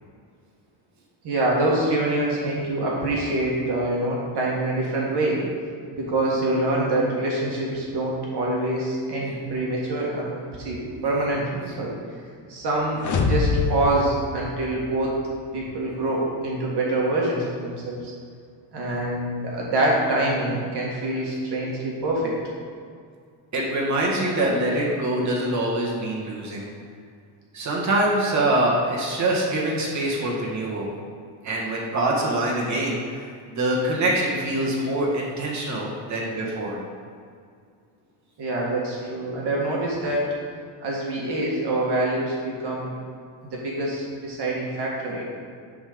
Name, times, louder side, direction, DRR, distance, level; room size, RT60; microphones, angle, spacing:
voice 1, 1.2-5.4 5.9-11.9 12.5-15.1 15.5-18.1 18.7-22.3 38.4-40.3 40.8-43.0 43.5-45.2, right 1 dB, 55° right, -4 dB, 1.8 m, -25 dB
sound 1, 13.0-15.1, left 4 dB, 35° left, 1.0 m, -25 dB
voice 2, 23.5-26.7 27.5-30.9 31.4-36.8, right 1 dB, 35° right, -3 dB, 1.9 m, -24 dB
10.0 x 4.0 x 5.2 m, 2.2 s
cardioid pair, 110°, 49 cm